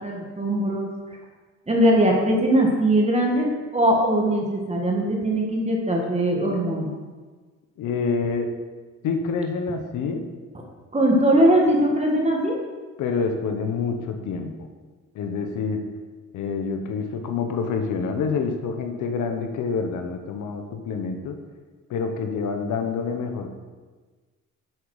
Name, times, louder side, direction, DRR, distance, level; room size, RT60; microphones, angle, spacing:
voice 1, 0.0-0.9 1.7-6.9 10.9-12.6, right 1 dB, 20° right, -1 dB, 1.8 m, -20 dB
voice 2, 7.8-8.5 9.0-10.3 13.0-14.5 15.1-15.8 16.3-21.3 21.9-23.5, left 5 dB, 80° left, 5 dB, 1.1 m, -27 dB
7.8 x 7.1 x 4.9 m, 1.4 s
cardioid pair, 90°, 30 cm